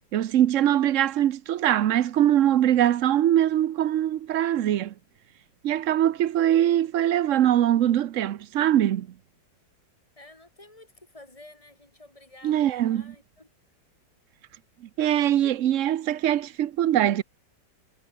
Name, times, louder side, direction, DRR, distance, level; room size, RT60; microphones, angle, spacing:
voice 1, 0.1-4.9 5.6-9.1 12.4-13.0 15.0-17.2, right 11 dB, 60° right, 0.8 m, -22 dB
voice 2, 10.2-13.5, left 2 dB, 15° left, 5.9 m, -51 dB
omnidirectional pair, 2.0 m